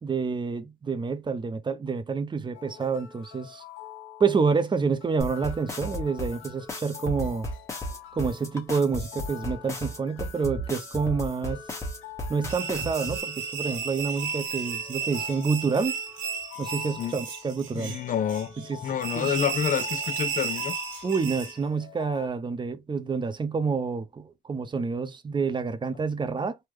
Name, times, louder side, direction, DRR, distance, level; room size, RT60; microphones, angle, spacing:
voice 1, 0.0-3.6 4.2-7.5 8.1-11.6 12.3-16.0 16.6-18.0 18.7-18.8 19.1-19.3 21.0-26.6, right 5 dB, 25° right, 0.5 m, -28 dB
sound 1, 2.5-22.3, left 11 dB, 80° left, 0.9 m, -46 dB
sound 2, 5.2-13.2, equal, 15° left, 1.2 m, -34 dB
sound 3, 12.5-21.6, right 7 dB, 80° right, 1.2 m, -34 dB
voice 2, 17.7-18.5 18.8-20.8, left 8 dB, 40° left, 0.5 m, -28 dB
3.5 x 2.1 x 3.1 m
cardioid pair, 90°, 20 cm